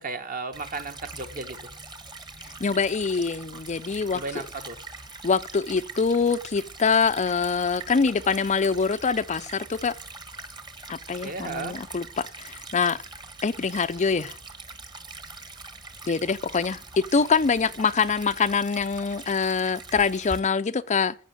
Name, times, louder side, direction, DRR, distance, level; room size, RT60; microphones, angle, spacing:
voice 1, 0.0-1.6 4.1-4.8 11.2-11.8, right 3 dB, 40° right, 1.5 m, -34 dB
Stream / Trickle dribble, 0.5-20.4, right 3 dB, 20° right, 1.4 m, -43 dB
voice 2, 2.6-4.4 5.2-9.9 10.9-13.0 13.4-14.4 16.1-21.1, left 5 dB, 30° left, 0.5 m, -24 dB
15.0 x 5.9 x 9.1 m
head